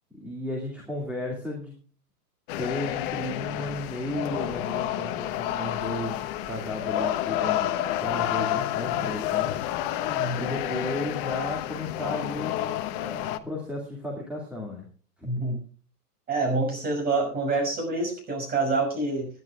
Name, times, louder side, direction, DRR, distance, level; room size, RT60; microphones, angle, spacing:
voice 1, 0.1-1.8 2.6-9.6 10.4-14.9 15.2-15.4, left 1 dB, ahead, -4 dB, 2.1 m, -34 dB
sound 1, 2.5-13.4, left 12 dB, 35° left, 0.8 m, -29 dB
voice 2, 10.1-10.5 15.2-15.6 16.3-19.3, right 3 dB, 20° right, 3 dB, 5.9 m, -27 dB
25.5 x 11.0 x 2.4 m, 0.39 s
hypercardioid pair, 140°, 49 cm